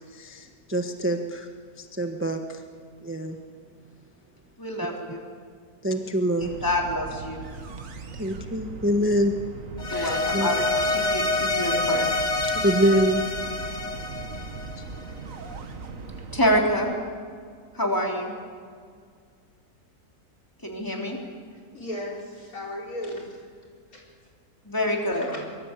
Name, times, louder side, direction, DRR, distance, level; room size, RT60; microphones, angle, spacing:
voice 1, 0.1-1.5 1.8-2.6 3.0-3.4 5.8-6.5 8.2-9.3 10.3-10.5 12.4-13.2, equal, 10° right, 4 dB, 1.1 m, -25 dB
voice 2, 4.6-5.2 6.6-7.4 9.9-12.1 16.3-16.9 17.7-18.3 20.6-21.2 24.7-25.3, equal, 15° left, 0 dB, 3.7 m, -26 dB
sound 1, 6.4-16.7, right 4 dB, 60° right, 1.7 m, -39 dB
sound 2, 9.8-15.1, left 2 dB, 50° left, 1.9 m, -27 dB
voice 3, 21.5-23.5 23.9-24.0 25.2-25.5, left 1 dB, 65° left, -2 dB, 4.9 m, -36 dB
24.0 x 22.5 x 8.3 m, 2.1 s
omnidirectional pair, 1.6 m